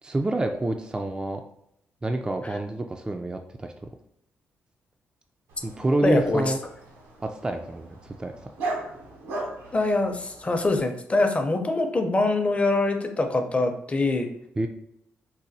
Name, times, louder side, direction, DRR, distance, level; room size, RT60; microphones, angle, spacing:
voice 1, 0.0-1.4 2.0-3.9 5.6-6.6 7.2-8.4 14.6-14.7, right 2 dB, 20° right, 4 dB, 0.3 m, -28 dB
Dog, 5.5-10.8, right 2 dB, 90° right, 0.8 m, -38 dB
voice 2, 6.0-6.5 9.7-14.3, left 2 dB, 25° left, 5 dB, 0.6 m, -24 dB
4.1 x 2.1 x 2.6 m, 0.76 s
supercardioid pair, 60°, 5 cm